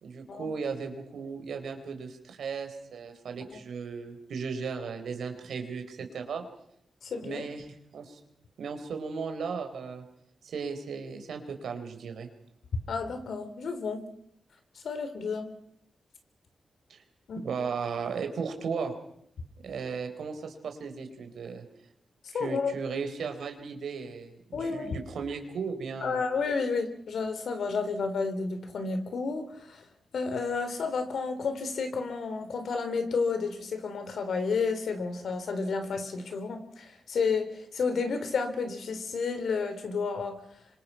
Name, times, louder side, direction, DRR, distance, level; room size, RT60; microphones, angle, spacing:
voice 1, 0.0-6.4 7.2-8.2 8.6-10.0 10.4-12.3 16.9-17.0 17.4-18.9 19.6-21.6 22.3-26.2, right 5 dB, 85° right, 6 dB, 4.0 m, -36 dB
voice 2, 7.0-7.4 12.9-14.1 14.8-15.5 17.3-17.4 22.3-22.7 24.5-25.0 26.0-29.8 30.1-40.4, left 4 dB, 80° left, 8 dB, 3.8 m, -31 dB
26.5 x 25.0 x 5.8 m, 0.72 s
wide cardioid pair, 100°, 0 cm